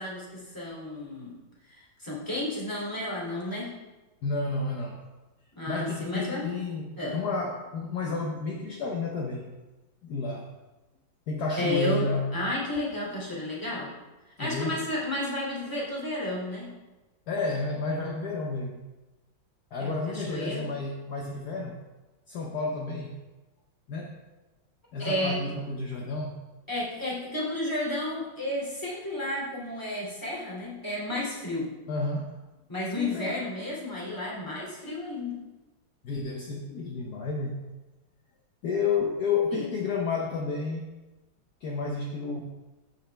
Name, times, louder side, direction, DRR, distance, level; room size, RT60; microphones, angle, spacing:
voice 1, 0.0-1.3 1.7-3.7 5.6-6.5 7.0-7.2 11.6-13.9 14.4-16.7 19.8-20.6 25.0-25.4 26.7-31.7 32.7-35.4 39.5-39.7, left 1 dB, 10° left, -5 dB, 2.5 m, -32 dB
voice 2, 4.2-5.0 5.7-9.5 10.0-10.5 11.3-12.3 14.4-14.8 17.3-18.8 19.7-21.8 22.3-23.2 23.9-24.2 24.9-26.4 31.9-32.4 33.0-33.4 36.0-37.6 38.6-40.9 41.6-42.4, left 3 dB, 60° left, 0 dB, 1.3 m, -31 dB
13.5 x 5.5 x 3.3 m, 1.1 s
omnidirectional pair, 2.1 m